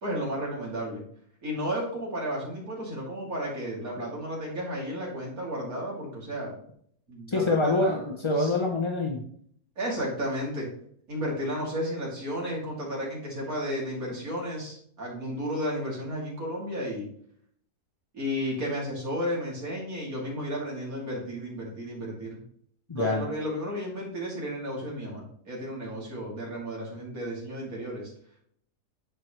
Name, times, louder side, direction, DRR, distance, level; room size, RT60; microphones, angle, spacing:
voice 1, 0.0-1.0 1.4-6.5 7.1-8.5 9.8-10.7 11.1-17.1 18.1-22.4 22.9-28.1, equal, 55° right, -4 dB, 3.3 m, -33 dB
voice 2, 7.3-9.2 22.9-23.2, left 2 dB, 35° left, 1 dB, 0.5 m, -25 dB
11.5 x 4.7 x 3.3 m, 0.63 s
omnidirectional pair, 1.7 m